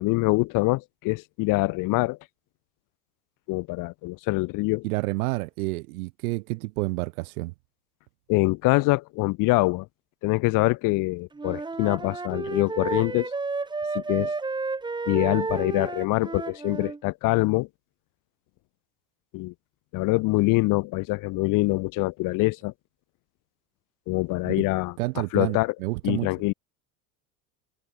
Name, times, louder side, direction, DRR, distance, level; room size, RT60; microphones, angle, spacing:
voice 1, 0.0-2.2 3.5-4.8 8.3-9.9 10.2-13.3 13.9-14.3 15.1-17.7 19.3-19.5 19.9-22.7 24.1-24.9 25.3-25.7 26.0-26.5, left 23 dB, 45° left, 0.6 m, -24 dB
voice 2, 4.8-7.5 24.4-24.5 25.0-26.3, right 23 dB, 70° right, 1.8 m, -29 dB
Wind instrument woodwind instrument, 11.3-17.0, right 3 dB, 10° right, 0.9 m, -31 dB
hypercardioid pair, 80°, 45 cm